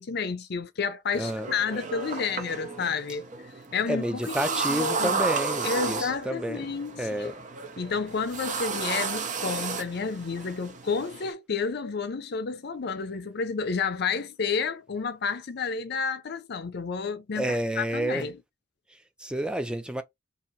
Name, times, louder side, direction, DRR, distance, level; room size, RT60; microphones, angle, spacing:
voice 1, 0.0-3.3 3.7-5.2 5.6-7.2 7.8-18.3, left 5 dB, 60° left, 0.5 m, -30 dB
voice 2, 1.1-1.5 3.9-6.7 7.0-7.3 17.3-18.3 18.9-20.0, right 1 dB, 5° right, 0.3 m, -30 dB
sound 1, 1.1-11.3, right 4 dB, 40° right, 0.8 m, -33 dB
2.9 x 2.7 x 3.9 m
head